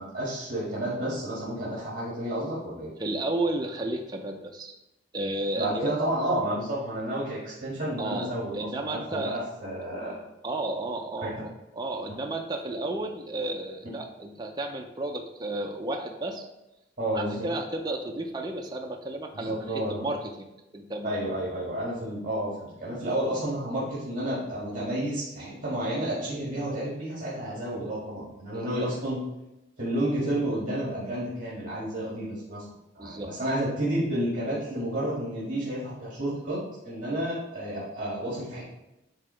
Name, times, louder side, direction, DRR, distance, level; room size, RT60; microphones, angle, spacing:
voice 1, 0.0-2.9 5.6-10.2 11.2-11.4 17.0-17.5 19.3-20.1 21.0-29.2 29.8-32.6 32.9-38.6, right 1 dB, 45° right, -8 dB, 2.1 m, -31 dB
voice 2, 3.0-4.7 5.1-5.9 8.0-9.4 10.4-11.5 11.8-16.5 17.1-19.5 19.9-20.5 20.7-21.2 23.3-23.4 28.5-28.9 33.0-33.3, right 2 dB, 20° right, 1 dB, 0.5 m, -32 dB
9.8 x 3.8 x 3.4 m, 0.95 s
head